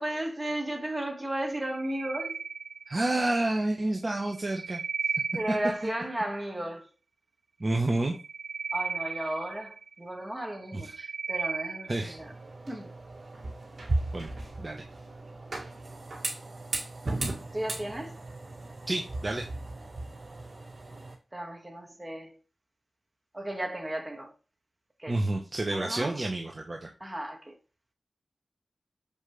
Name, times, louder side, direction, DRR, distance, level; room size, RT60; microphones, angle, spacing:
voice 1, 0.0-2.3 2.9-3.0 5.3-6.9 8.7-12.3 12.7-12.9 17.5-18.2 21.3-22.3 23.3-24.3 25.0-25.2 25.7-26.2 27.0-27.6, right 1 dB, 20° right, 2.0 m, -34 dB
sound 1, 1.6-3.2 4.2-6.0 8.0-10.1 10.6-12.1, right 5 dB, 85° right, 0.6 m, -35 dB
voice 2, 2.9-4.8 7.6-8.1 10.7-10.9 11.9-12.2 14.1-14.3 14.6-14.8 18.9-19.4 25.1-26.9, right 2 dB, 40° right, 1.1 m, -29 dB
sound 2, 11.9-21.1, right 2 dB, 60° right, 2.3 m, -36 dB
6.9 x 5.2 x 3.3 m
wide cardioid pair, 65°, 0 cm